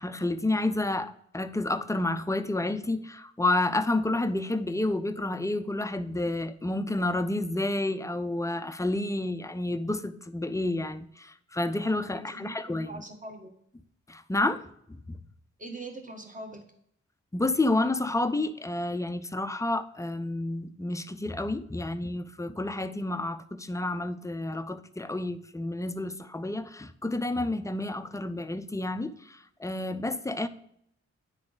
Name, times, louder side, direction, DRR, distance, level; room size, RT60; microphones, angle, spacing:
voice 1, 0.0-13.0 14.1-15.2 17.3-30.5, left 2 dB, 10° left, 0.5 m, -30 dB
voice 2, 12.1-13.5 15.6-16.7, right 2 dB, 25° right, 1.5 m, -42 dB
9.7 x 3.7 x 3.9 m
cardioid pair, 65°, 29 cm